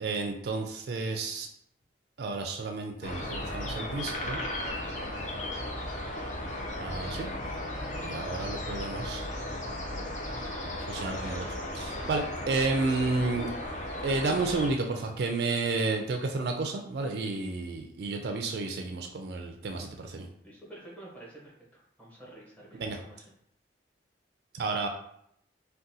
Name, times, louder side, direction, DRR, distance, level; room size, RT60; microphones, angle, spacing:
voice 1, 0.0-1.5 2.2-4.4 6.8-7.3 8.0-9.2 10.9-13.5 14.0-20.3 22.7-23.0 24.5-24.9, right 3 dB, 60° right, 4 dB, 0.3 m, -31 dB
sound 1, 3.0-14.7, left 1 dB, 40° left, 0.5 m, -35 dB
voice 2, 20.4-23.2, right 1 dB, 10° left, -6 dB, 0.9 m, -49 dB
3.6 x 2.2 x 2.7 m, 0.71 s
head